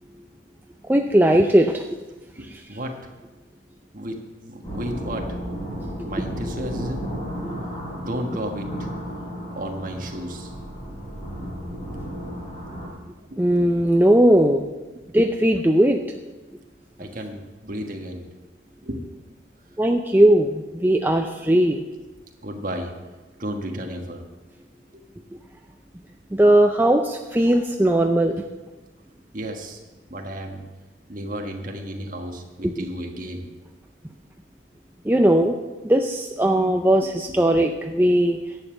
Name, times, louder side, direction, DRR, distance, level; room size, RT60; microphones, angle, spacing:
voice 1, 0.9-1.8 2.5-2.6 6.0-6.1 13.4-14.7 15.1-16.1 19.8-21.8 26.3-28.4 32.6-32.7 35.0-35.6 35.8-38.4, right 1 dB, 10° right, 3 dB, 0.4 m, -18 dB
voice 2, 2.4-2.9 3.9-5.3 6.1-7.1 8.0-8.7 9.6-10.5 11.7-12.1 12.6-12.8 13.3-13.4 17.0-18.3 18.8-19.0 22.4-22.9 23.4-24.2 29.3-29.8 30.1-30.6 31.1-33.5 37.0-37.2, right 1 dB, 40° right, 3 dB, 1.5 m, -33 dB
sound 1, 4.6-12.9, equal, 25° left, 4.5 m, -33 dB
11.0 x 7.2 x 7.7 m, 1.2 s
head